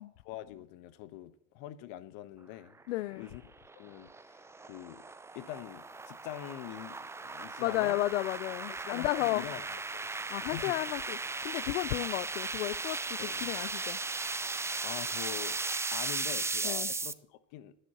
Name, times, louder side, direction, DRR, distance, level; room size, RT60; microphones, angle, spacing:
voice 1, 0.0-2.8 3.1-3.4 3.7-5.0 5.3-8.0 8.7-9.6 9.9-10.1 10.5-10.7 13.2-13.5 14.6-15.6 15.9-17.7, left 13 dB, 55° left, 1.3 m, -44 dB
voice 2, 2.9-3.3 7.6-9.4 10.3-14.0 16.6-16.9, left 17 dB, 80° left, 0.5 m, -33 dB
sound 1, 3.2-17.1, right 3 dB, 5° right, 0.5 m, -37 dB
11.5 x 9.9 x 6.9 m
hypercardioid pair, 95°, 37 cm